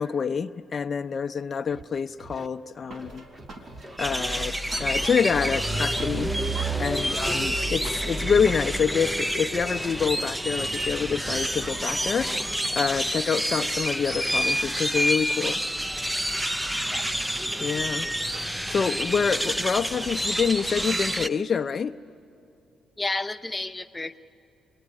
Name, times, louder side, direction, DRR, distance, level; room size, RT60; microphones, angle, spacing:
voice 1, 0.0-3.3 4.0-6.3 6.8-15.6 17.6-18.1 18.5-21.9, left 6 dB, 40° left, 6 dB, 0.6 m, -27 dB
Scratching (performance technique), 1.7-1.8 2.2-2.5 3.0-4.0 4.3-4.5 4.8-5.1 5.5-6.5 6.9-7.1 7.4-7.7 8.2-9.1 9.5-9.7 10.0-11.8, right 1 dB, 25° right, 1.6 m, -45 dB
sound 1, 2.9-5.1 5.4-8.6, right 2 dB, 65° right, 4.0 m, -43 dB
sound 2, 4.0-21.3, right 1 dB, 10° right, 0.6 m, -28 dB
voice 2, 23.0-24.2, left 2 dB, 15° left, 5 dB, 0.9 m, -32 dB
29.0 x 21.0 x 9.8 m, 2.6 s
cardioid pair, 90°, 0 cm